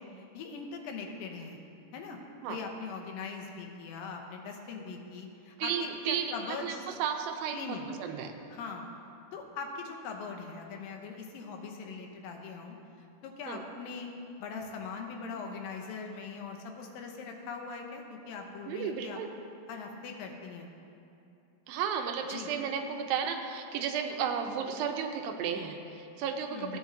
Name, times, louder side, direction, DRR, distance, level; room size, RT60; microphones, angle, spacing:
voice 1, 0.0-1.6 1.9-2.2 2.5-6.9 7.5-7.9 8.5-8.9 9.3-14.1 14.4-19.2 19.7-20.7 22.3-22.5 26.5-26.8, left 5 dB, 80° left, 2 dB, 2.6 m, -41 dB
voice 2, 5.6-8.3 13.5-13.6 18.7-19.3 21.7-26.8, right 7 dB, 85° right, 5 dB, 2.4 m, -33 dB
16.0 x 8.9 x 2.7 m, 2.7 s
omnidirectional pair, 4.1 m